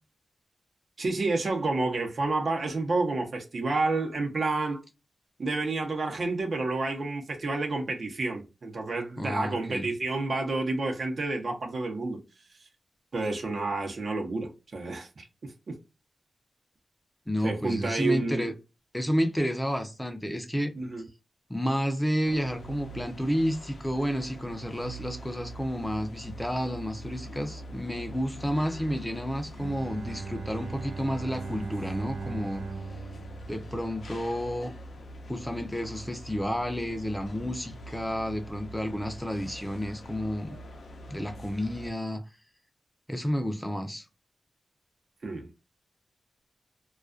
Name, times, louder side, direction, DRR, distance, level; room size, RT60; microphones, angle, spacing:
voice 1, 1.0-4.8 5.4-12.2 13.1-15.3 15.7-15.8 17.4-18.5 20.8-21.0 45.2-45.5, right 3 dB, 65° right, 0.7 m, -29 dB
voice 2, 9.2-9.9 17.3-18.5 18.9-20.7 21.5-32.6 33.5-34.7 35.3-40.6 41.1-42.2 43.1-44.0, equal, 10° left, 0.5 m, -31 dB
sound 1, 22.2-41.9, equal, 75° left, 0.5 m, -44 dB
Bowed string instrument, 29.6-34.5, right 4 dB, 80° right, 0.4 m, -39 dB
2.3 x 2.3 x 2.4 m
wide cardioid pair, 80°, 0 cm